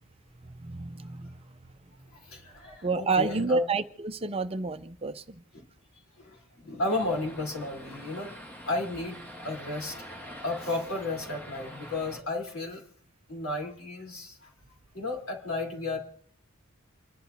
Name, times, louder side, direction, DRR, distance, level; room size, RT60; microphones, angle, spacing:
voice 1, 0.6-1.3 2.8-5.4, right 4 dB, 25° right, 0.6 m, -29 dB
voice 2, 2.2-3.6 5.5-5.6 6.2-8.3 8.7-12.8 13.3-14.5 14.9-16.0, left 2 dB, 65° left, 3.9 m, -33 dB
sound 1, 6.9-12.2, equal, 10° left, 1.5 m, -45 dB
28.5 x 11.0 x 2.8 m
head